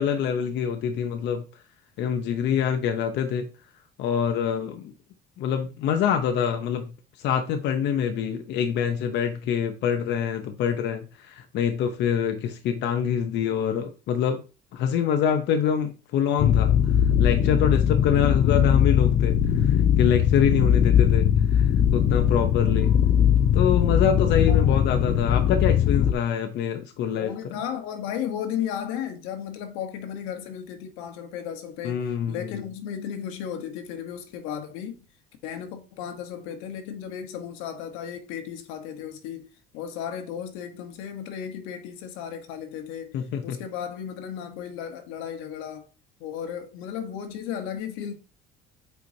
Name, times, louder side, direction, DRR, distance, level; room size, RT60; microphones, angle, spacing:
voice 1, 0.0-1.4 2.0-3.5 4.0-4.9 5.4-6.9 7.2-14.4 14.7-16.7 17.2-19.4 19.7-22.9 23.5-27.5 31.8-32.6 43.1-43.6, left 8 dB, 60° left, 0.8 m, -25 dB
sound 1, 16.4-26.1, left 9 dB, 40° left, 0.5 m, -20 dB
voice 2, 24.5-24.8 27.0-35.1 35.4-39.5 39.7-45.9 46.2-48.1, left 9 dB, 85° left, 1.2 m, -35 dB
8.0 x 4.7 x 2.7 m
cardioid pair, 120°, 20 cm